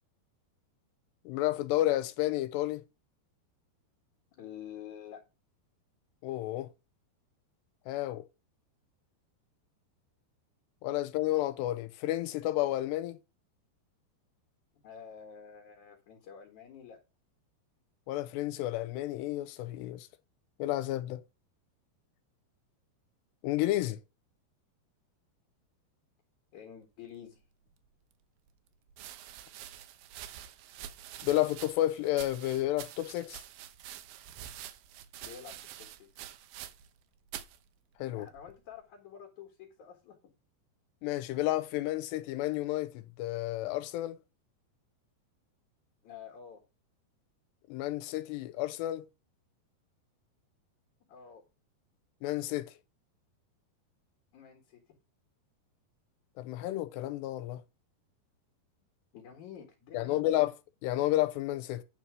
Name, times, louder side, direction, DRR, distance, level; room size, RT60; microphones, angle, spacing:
voice 1, 1.3-2.8 6.2-6.7 7.9-8.2 10.8-13.2 18.1-20.1 20.6-21.2 23.4-24.0 31.2-33.4 38.0-38.3 41.0-44.2 47.7-49.0 52.2-52.7 56.4-57.6 59.9-60.5 60.8-61.8, left 15 dB, 85° left, 2.9 m, -31 dB
voice 2, 4.3-5.3 14.7-17.0 26.5-27.4 35.2-36.3 38.2-40.2 46.0-46.6 51.1-51.4 54.3-55.0 59.1-60.4, left 8 dB, 55° left, 2.6 m, -49 dB
sound 1, 27.8-27.9 28.9-37.0 37.3-37.6 38.3-38.8, right 11 dB, 75° right, 2.3 m, -47 dB
10.0 x 4.4 x 6.1 m
omnidirectional pair, 4.9 m